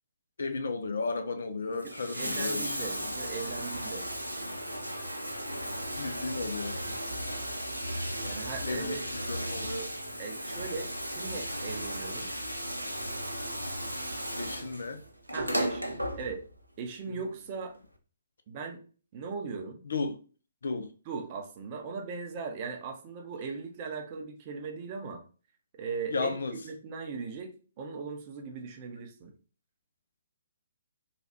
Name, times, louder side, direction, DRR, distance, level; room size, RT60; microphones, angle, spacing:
voice 1, 0.4-3.1 6.0-6.8 8.6-9.9 14.4-15.0 15.5-15.9 19.8-20.2 20.6-20.9 26.1-26.5, left 3 dB, 60° left, 0.5 m, -34 dB
Bathtub (filling or washing), 1.7-16.6 17.8-17.9, equal, 90° right, 0.5 m, -35 dB
voice 2, 1.8-4.0 8.2-9.0 10.2-12.3 15.3-15.8 16.2-16.4 16.8-17.8 18.5-18.8 19.1-19.8 21.1-25.2 25.8-26.4 26.6-29.3, right 5 dB, 30° right, 0.6 m, -38 dB
3.3 x 2.3 x 2.9 m
figure-of-eight pair, 130°, 0 cm